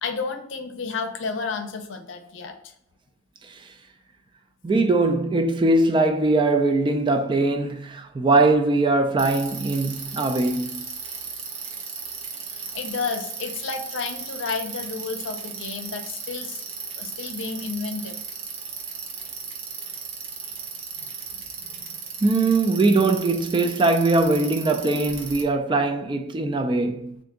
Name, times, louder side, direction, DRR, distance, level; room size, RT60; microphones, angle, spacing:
voice 1, 0.0-2.5 12.7-16.6 17.0-18.2 21.3-21.4 21.7-21.8, left 4 dB, 75° left, 0.6 m, -31 dB
voice 2, 4.6-10.9 22.2-27.2, right 2 dB, 25° right, 0.3 m, -21 dB
Bicycle, 9.2-25.4, right 5 dB, 90° right, 0.8 m, -36 dB
3.7 x 2.5 x 3.5 m
head